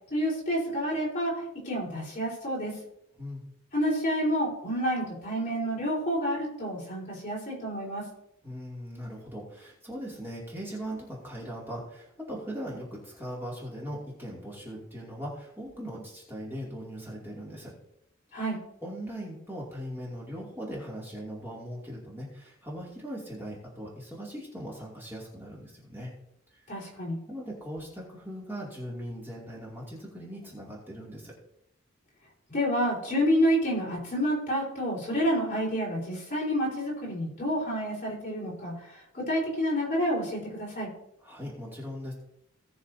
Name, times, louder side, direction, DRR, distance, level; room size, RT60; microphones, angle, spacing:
voice 1, 0.1-2.8 3.7-8.1 18.3-18.6 26.7-27.2 32.5-40.9, equal, 35° left, -4 dB, 4.1 m, -29 dB
voice 2, 8.4-17.7 18.3-18.4 18.8-26.1 26.5-26.6 27.3-31.3 41.2-42.1, equal, 10° right, -5 dB, 2.6 m, -39 dB
18.5 x 6.4 x 2.7 m, 0.79 s
head